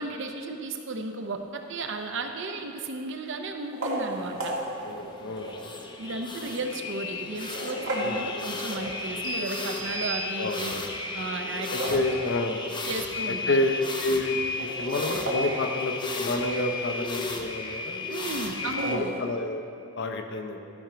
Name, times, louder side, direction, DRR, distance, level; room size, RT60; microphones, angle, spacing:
voice 1, 0.0-1.4 1.7-4.5 6.0-10.7 11.1-12.2 12.8-13.6 18.1-19.1, right 3 dB, 65° right, 5 dB, 0.7 m, -34 dB
sound 1, 1.9-2.4 3.6-5.7 6.3-6.4 7.3-9.3 11.4-12.8 13.2-13.3 13.5-13.6 14.4-16.7 18.5-19.2, right 1 dB, 90° right, 2.0 m, -34 dB
sound 2, 4.1-19.0, left 3 dB, 25° left, 0.6 m, -34 dB
voice 2, 4.8-5.5 8.0-8.3 10.3-10.8 11.7-12.6 13.5-13.7 14.0-18.1 18.9-19.7 20.0-20.6, left 2 dB, 60° left, 5 dB, 0.7 m, -29 dB
sound 3, 9.2-11.0, right 8 dB, 15° right, 1.1 m, -38 dB
12.0 x 4.5 x 5.0 m, 2.5 s
head